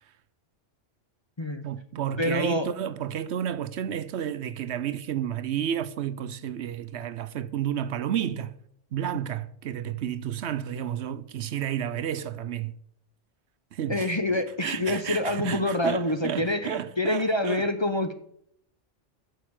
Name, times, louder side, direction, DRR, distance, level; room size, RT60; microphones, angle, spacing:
voice 1, 1.6-8.5 8.9-12.7 13.7-17.7, right 9 dB, 70° right, 0.9 m, -31 dB
voice 2, 2.2-2.7 13.9-18.1, left 1 dB, 25° left, 0.8 m, -26 dB
9.0 x 6.6 x 8.7 m
omnidirectional pair, 1.2 m